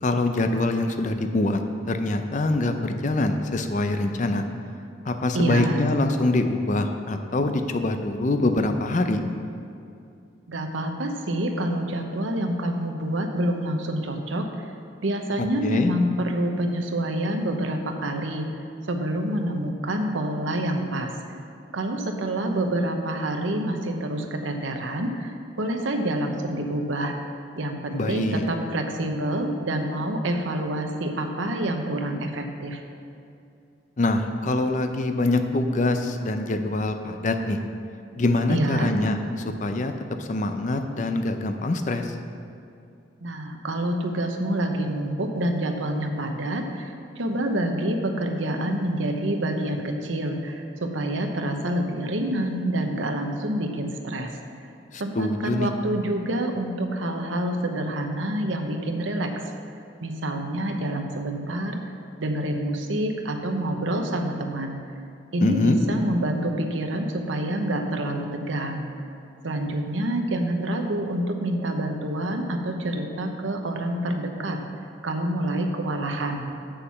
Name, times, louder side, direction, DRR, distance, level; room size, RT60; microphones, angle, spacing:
voice 1, 0.0-1.6 1.9-4.4 5.1-9.2 15.6-15.9 27.9-28.5 34.0-37.6 38.1-39.2 39.4-39.9 40.2-42.1 54.9-55.7 65.4-65.8, left 2 dB, 40° left, 6 dB, 0.5 m, -24 dB
voice 2, 5.3-5.8 10.5-14.4 15.0-18.5 18.8-21.1 21.7-27.1 27.6-32.8 38.5-38.9 43.2-54.4 55.0-59.5 60.0-61.8 62.2-64.8 65.3-68.8 69.4-74.6 75.0-76.4, right 1 dB, 85° right, 4 dB, 0.9 m, -27 dB
7.4 x 6.8 x 5.7 m, 2.5 s
head